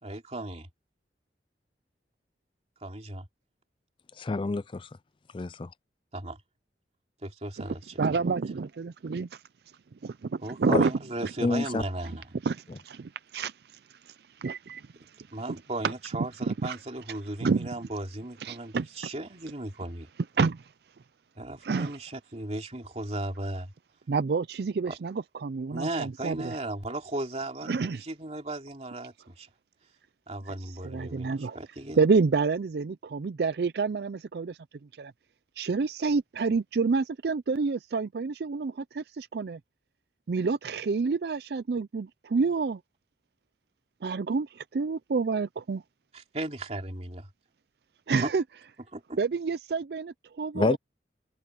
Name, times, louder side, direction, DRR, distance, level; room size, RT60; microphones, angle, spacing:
voice 1, 0.0-0.7 2.8-3.3 6.1-6.4 7.2-8.2 10.4-12.2 15.3-20.1 21.4-23.7 24.9-25.0 25.7-29.5 30.3-32.1 46.1-47.3 48.2-48.3 48.9-49.2, right 1 dB, 35° right, 2.9 m, -36 dB
voice 2, 4.2-4.9 5.3-5.7 10.7-10.8 11.4-11.8 50.5-50.8, left 3 dB, 30° left, 0.4 m, -27 dB
voice 3, 8.0-9.4 10.0-10.9 11.2-11.3 12.4-13.5 14.4-14.9 15.2-15.3 16.5-16.8 17.4-17.7 18.4-18.9 20.4-20.6 21.6-22.0 24.1-26.5 27.7-28.0 30.8-31.6 32.0-34.6 35.0-35.1 35.6-39.6 40.3-42.8 44.0-45.8 48.1-48.4 49.2-50.8, right 4 dB, 60° right, 0.4 m, -28 dB
head